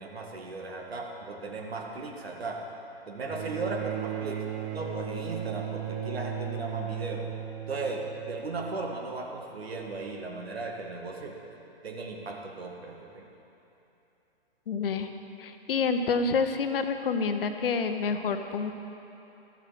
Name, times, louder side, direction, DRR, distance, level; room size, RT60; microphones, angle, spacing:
voice 1, 0.0-2.6 3.1-4.4 4.7-7.3 7.7-11.5 11.8-13.3, right 3 dB, 75° right, 1 dB, 1.9 m, -36 dB
Bowed string instrument, 3.3-8.7 9.9-10.0, right 8 dB, 25° right, 1.1 m, -36 dB
voice 2, 14.7-15.1 15.4-18.7, left 5 dB, 65° left, 7 dB, 1.0 m, -28 dB
13.5 x 7.7 x 5.9 m, 2.9 s
figure-of-eight pair, 125°, 31 cm